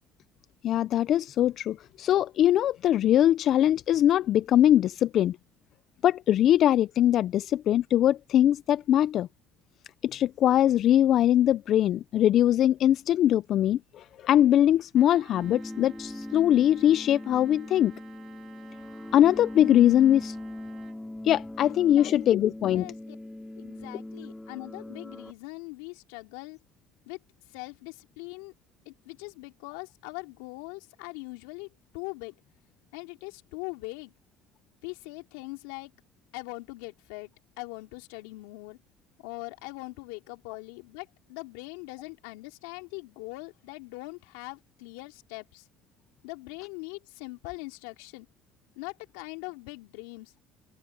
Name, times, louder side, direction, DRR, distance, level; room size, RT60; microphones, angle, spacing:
voice 1, 0.6-5.4 6.0-9.3 10.0-17.9 19.1-20.4 21.2-22.9, left 11 dB, 55° left, 0.5 m, -22 dB
Trumpet, 14.9-21.0, right 9 dB, 50° right, 7.1 m, -54 dB
sound 1, 15.3-25.3, left 1 dB, 5° left, 5.3 m, -41 dB
voice 2, 21.9-23.2 23.5-26.6 27.1-27.2 27.5-28.5 28.8-31.7 31.9-32.3 32.9-34.1 34.8-35.9 36.3-37.3 37.6-38.8 39.2-45.6 46.2-48.3 48.8-50.3, left 25 dB, 90° left, 3.3 m, -41 dB
open air
supercardioid pair, 100°, 0 cm